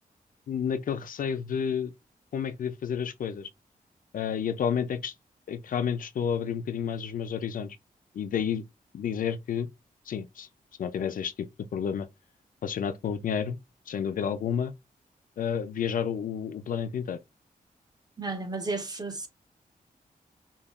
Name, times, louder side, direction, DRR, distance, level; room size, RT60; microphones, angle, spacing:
voice 1, 0.5-1.9 2.3-3.5 4.1-5.1 5.5-7.8 8.1-8.6 8.9-9.7 10.1-10.5 10.8-11.5 11.7-12.1 12.6-13.6 13.9-14.7 15.4-17.2, left 7 dB, 65° left, 0.4 m, -30 dB
voice 2, 18.2-19.3, right 3 dB, 25° right, 0.8 m, -33 dB
5.5 x 2.3 x 2.4 m
wide cardioid pair, 145°, 15 cm